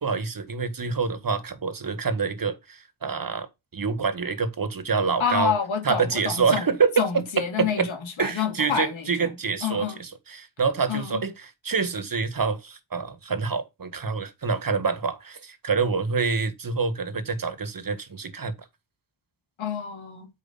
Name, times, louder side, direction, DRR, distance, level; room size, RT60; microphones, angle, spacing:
voice 1, 0.0-5.5 5.8-7.9 8.2-18.5, right 5 dB, 45° right, 1.8 m, -26 dB
voice 2, 5.2-6.6 7.0-9.3 9.6-10.0 10.9-11.2 19.6-20.3, left 6 dB, 85° left, 2.4 m, -28 dB
8.5 x 4.9 x 5.5 m
cardioid pair, 60°, 46 cm